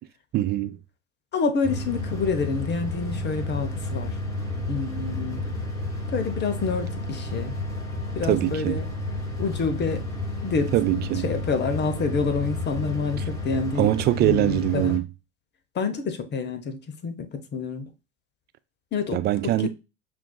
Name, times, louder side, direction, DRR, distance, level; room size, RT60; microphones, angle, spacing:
voice 1, 0.3-0.8 8.3-8.8 10.7-11.3 13.8-15.1 19.1-19.7, right 15 dB, 30° right, 0.4 m, -23 dB
voice 2, 1.3-4.2 4.7-5.4 6.1-7.6 8.1-8.8 9.4-10.0 10.4-10.7 11.2-13.9 14.2-15.0 15.7-17.9 18.9-19.2 19.6-19.7, left 4 dB, 30° left, 0.8 m, -28 dB
sound 1, 1.6-15.0, left 2 dB, 10° left, 1.7 m, -31 dB
5.8 x 2.6 x 2.2 m
hypercardioid pair, 95°, 38 cm